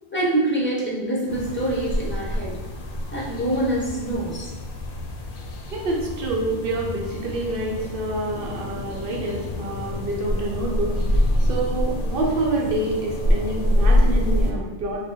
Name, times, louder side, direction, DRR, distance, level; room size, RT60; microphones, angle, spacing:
voice 1, 0.1-2.6 3.1-4.5, right 1 dB, 15° left, -4 dB, 0.5 m, -25 dB
sound 1, 1.3-14.5, left 1 dB, 65° left, 0.7 m, -25 dB
voice 2, 5.7-11.0 11.4-15.1, right 2 dB, 65° right, -1 dB, 0.8 m, -27 dB
3.2 x 2.0 x 3.8 m, 1.2 s
omnidirectional pair, 1.0 m